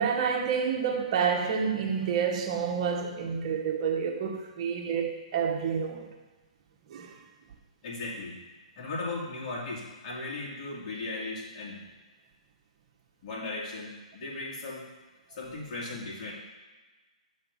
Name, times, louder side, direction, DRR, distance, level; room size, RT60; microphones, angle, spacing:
voice 1, 0.0-6.1 6.9-7.1, right 6 dB, 45° right, 1.0 m, -29 dB
voice 2, 7.8-8.4 8.8-11.8 13.2-14.8 15.3-16.3, left 3 dB, 50° left, 2.3 m, -37 dB
7.0 x 3.4 x 5.4 m
hypercardioid pair, 135°, 4 cm